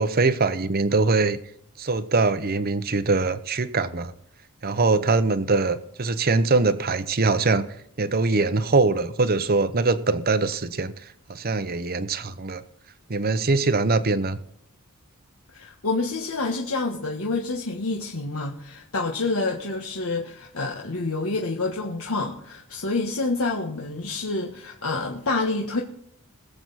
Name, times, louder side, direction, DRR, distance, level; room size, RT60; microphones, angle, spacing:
voice 1, 0.0-1.4 1.8-4.1 4.6-7.7 8.0-10.9 11.3-12.6 13.1-14.4, right 3 dB, 45° right, 0.9 m, -22 dB
voice 2, 15.5-25.8, left 3 dB, 80° left, 1.5 m, -28 dB
21.5 x 7.9 x 4.2 m
head